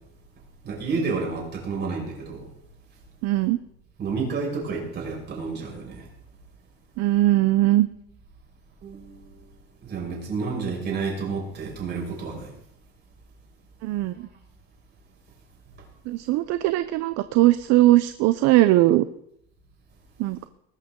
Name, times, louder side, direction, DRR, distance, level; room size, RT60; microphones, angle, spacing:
voice 1, 0.6-2.5 4.0-6.1 8.8-9.3 9.8-12.5, right 4 dB, 35° right, -2 dB, 6.1 m, -30 dB
voice 2, 3.2-3.6 7.0-7.9 13.8-14.3 16.1-19.0 20.2-20.5, right 16 dB, 55° right, 12 dB, 0.7 m, -20 dB
20.5 x 12.0 x 3.8 m, 0.73 s
cardioid pair, 145°, 31 cm